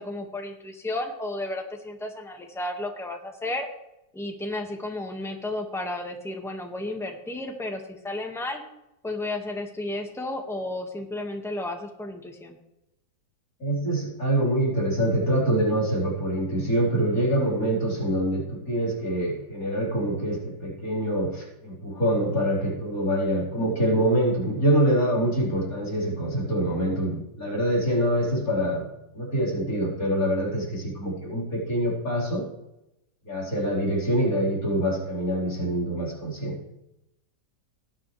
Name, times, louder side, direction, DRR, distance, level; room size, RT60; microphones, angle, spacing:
voice 1, 0.0-3.7 4.1-8.6 9.0-12.6, left 2 dB, ahead, 2 dB, 1.4 m, -33 dB
voice 2, 13.6-28.9 29.1-32.4 33.2-36.6, right 1 dB, 45° left, -5 dB, 4.7 m, -25 dB
19.0 x 9.6 x 3.3 m, 0.88 s
omnidirectional pair, 2.0 m